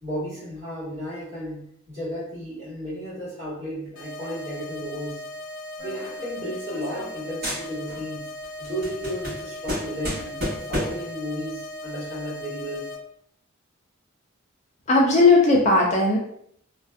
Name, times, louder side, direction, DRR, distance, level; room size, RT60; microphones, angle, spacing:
voice 1, 0.0-5.2 5.8-8.3 8.6-10.4 10.7-12.9, equal, 30° right, -9 dB, 1.4 m, -33 dB
sound 1, 4.0-13.0, left 1 dB, 90° left, 0.5 m, -38 dB
sound 2, 5.8-7.2 7.4-8.1 8.4-11.1, equal, 50° right, 1.1 m, -32 dB
voice 2, 14.9-16.2, left 3 dB, 35° left, -2 dB, 0.3 m, -17 dB
2.6 x 2.2 x 2.3 m, 0.68 s
head